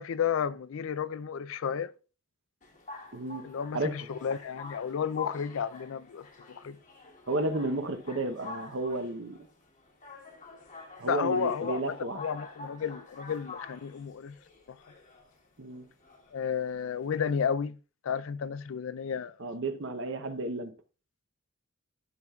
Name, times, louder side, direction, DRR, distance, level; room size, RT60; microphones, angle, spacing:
voice 1, 0.0-1.9 3.4-6.8 11.0-11.8 12.1-14.3 14.7-14.8 16.3-17.8 18.0-19.4, left 7 dB, 70° left, 0.4 m, -32 dB
sound 1, 2.6-17.5, left 4 dB, 40° left, 1.2 m, -47 dB
voice 2, 3.1-3.4 3.7-4.1 7.3-9.4 11.0-12.2 15.6-15.9 19.4-20.7, right 2 dB, 65° right, 0.9 m, -32 dB
11.0 x 5.8 x 2.4 m
head